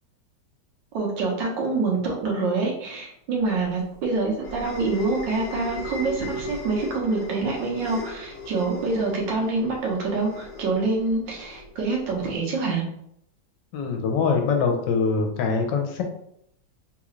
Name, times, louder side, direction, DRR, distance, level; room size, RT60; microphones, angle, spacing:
voice 1, 0.9-12.8, right 3 dB, 85° right, 0 dB, 1.6 m, -26 dB
sound 1, 3.5-12.3, left 2 dB, 60° left, 1.3 m, -38 dB
voice 2, 13.7-16.0, left 5 dB, 85° left, 3 dB, 1.3 m, -23 dB
3.7 x 2.4 x 3.0 m, 0.72 s
omnidirectional pair, 1.9 m